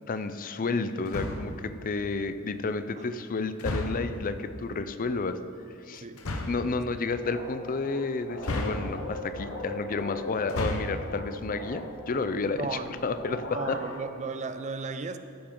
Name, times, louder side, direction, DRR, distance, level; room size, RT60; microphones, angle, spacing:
voice 1, 0.1-5.4 5.7-6.0 6.5-13.8, left 3 dB, 40° left, 11 dB, 0.5 m, -31 dB
sound 1, 1.1-1.6 3.6-4.2 6.2-6.7 8.4-9.2 10.4-11.1, left 1 dB, 75° left, 1.0 m, -32 dB
sound 2, 7.2-14.0, left 1 dB, 60° left, 1.4 m, -40 dB
voice 2, 12.6-13.0 13.5-15.2, right 4 dB, 35° right, 10 dB, 0.5 m, -35 dB
15.0 x 8.8 x 3.8 m, 2.7 s
head